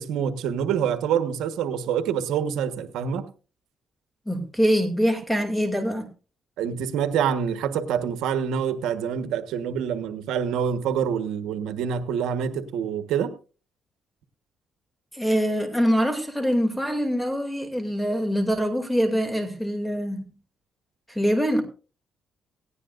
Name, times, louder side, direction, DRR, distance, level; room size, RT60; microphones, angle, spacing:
voice 1, 0.0-3.3 6.6-13.3, right 8 dB, 90° right, 1.3 m, -26 dB
voice 2, 4.3-6.1 15.1-20.2 21.1-21.6, equal, ahead, 2.6 m, -24 dB
18.5 x 16.5 x 2.5 m
cardioid pair, 90°, 0 cm